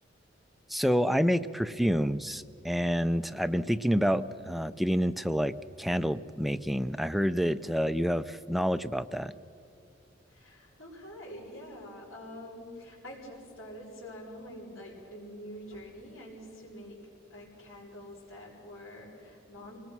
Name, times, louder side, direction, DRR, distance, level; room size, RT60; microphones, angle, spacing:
voice 1, 0.7-9.3, equal, ahead, 11 dB, 0.4 m, -28 dB
voice 2, 10.3-17.0 17.3-19.8, equal, 90° left, -7 dB, 5.4 m, -46 dB
25.5 x 19.5 x 6.1 m, 2.6 s
head